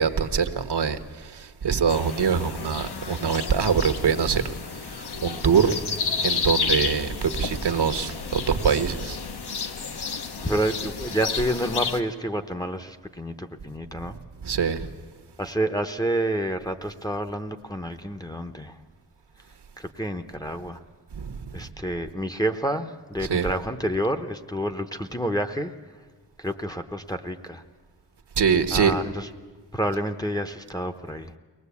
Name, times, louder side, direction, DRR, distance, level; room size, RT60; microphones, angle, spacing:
voice 1, 0.0-4.4 4.8-5.9 6.2-9.2 14.4-14.9 21.1-21.5 23.2-23.5 28.4-29.0, right 6 dB, 70° right, 1.3 m, -24 dB
sound 1, 1.9-12.0, left 5 dB, 65° left, 1.3 m, -31 dB
voice 2, 10.4-14.2 15.4-18.7 19.8-20.8 21.5-25.7 26.4-27.6 28.7-29.3 29.7-31.3, right 1 dB, 10° left, 0.9 m, -29 dB
23.0 x 19.0 x 8.4 m
wide cardioid pair, 110°, 43 cm